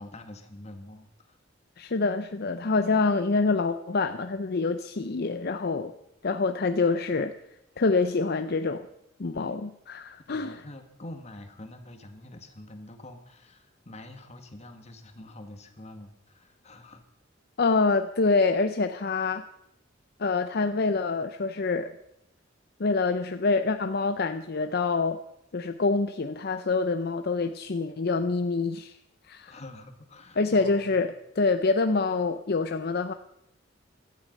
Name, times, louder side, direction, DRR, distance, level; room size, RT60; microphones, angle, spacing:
voice 1, 0.0-1.4 10.3-17.0 29.5-31.0, left 1 dB, 35° left, 6 dB, 1.8 m, -46 dB
voice 2, 1.8-5.9 6.2-7.3 7.8-8.9 9.2-10.6 17.6-19.5 20.2-21.9 22.8-25.2 25.5-29.0 29.3-29.6 30.4-33.1, left 3 dB, 55° left, 9 dB, 0.6 m, -26 dB
17.0 x 12.5 x 5.4 m, 0.82 s
head